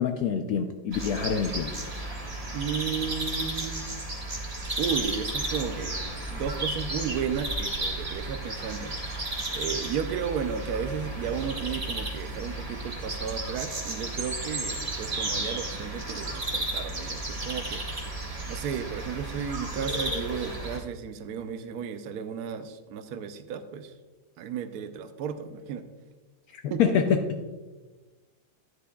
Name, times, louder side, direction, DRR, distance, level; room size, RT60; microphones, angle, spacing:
voice 1, 0.0-1.8 26.5-27.2, left 7 dB, 90° left, 5 dB, 0.8 m, -26 dB
sound 1, 0.9-20.8, right 2 dB, 25° right, 1.0 m, -33 dB
voice 2, 2.5-4.0 4.8-6.0 6.3-8.9 9.5-17.8 18.5-23.9 24.4-25.8 26.7-27.1, right 7 dB, 75° right, 9 dB, 0.9 m, -34 dB
11.0 x 9.9 x 2.3 m, 1.2 s
omnidirectional pair, 2.2 m